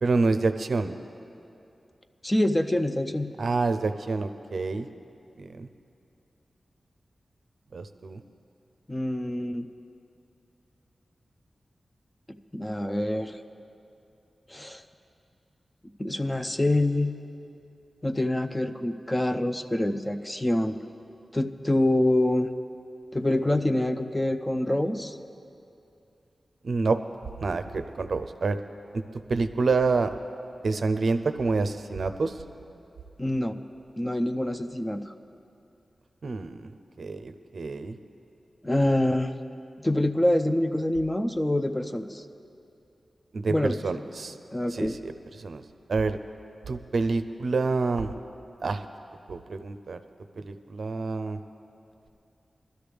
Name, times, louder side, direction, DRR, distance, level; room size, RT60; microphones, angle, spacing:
voice 1, 0.0-1.0 3.4-4.9 5.4-5.7 7.7-8.2 26.6-27.0 27.4-28.6 29.3-30.1 30.6-32.3 36.2-36.7 37.0-38.0 43.3-44.4 44.7-45.1 45.4-45.6 45.9-46.2 46.7-48.1 48.6-48.8 49.3-50.0 50.4-51.4, right 3 dB, 70° right, 10 dB, 0.5 m, -27 dB
voice 2, 2.2-3.3 8.9-9.7 12.5-13.4 14.5-14.8 16.0-17.1 18.0-20.8 21.3-22.5 23.1-25.2 33.2-33.6 34.0-35.1 38.6-39.3 39.8-42.2 43.5-43.8 44.5-45.0, left 1 dB, 15° left, 8 dB, 0.5 m, -26 dB
20.0 x 12.5 x 3.4 m, 2.7 s
wide cardioid pair, 95°, 0 cm